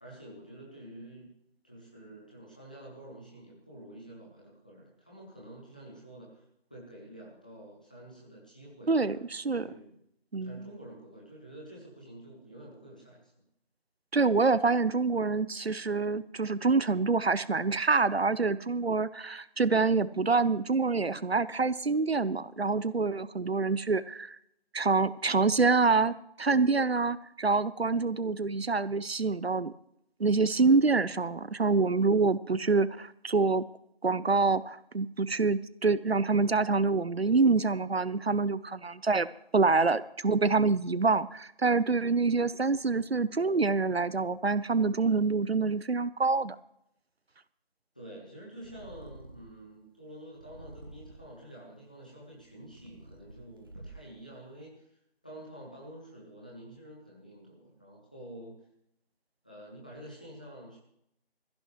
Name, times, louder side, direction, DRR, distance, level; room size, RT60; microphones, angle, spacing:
voice 1, 0.0-1.3 1.6-9.2 9.5-10.0 10.4-13.3 47.9-55.0 55.2-58.5 59.4-60.8, right 1 dB, 10° left, -4 dB, 1.1 m, -48 dB
voice 2, 8.9-9.7 10.3-10.6 14.1-24.4 24.7-29.7 30.2-33.6 34.0-39.3 39.5-46.6, right 4 dB, 80° right, 17 dB, 0.8 m, -26 dB
Purr, 48.6-49.7 50.3-51.4 52.1-54.2, right 2 dB, 20° right, 1.1 m, -50 dB
18.0 x 15.0 x 3.2 m, 0.76 s
figure-of-eight pair, 165°, 30 cm